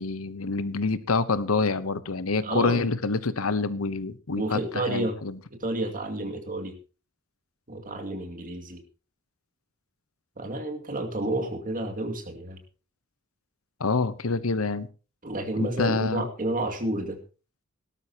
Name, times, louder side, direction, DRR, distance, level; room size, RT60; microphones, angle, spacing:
voice 1, 0.0-5.4 13.8-14.9 15.6-16.3, left 4 dB, 85° left, 1.0 m, -27 dB
voice 2, 2.4-2.9 4.4-5.2 5.5-6.8 7.7-8.8 10.4-12.6 15.2-17.2, right 1 dB, 40° right, 2.4 m, -30 dB
17.5 x 12.5 x 2.9 m
head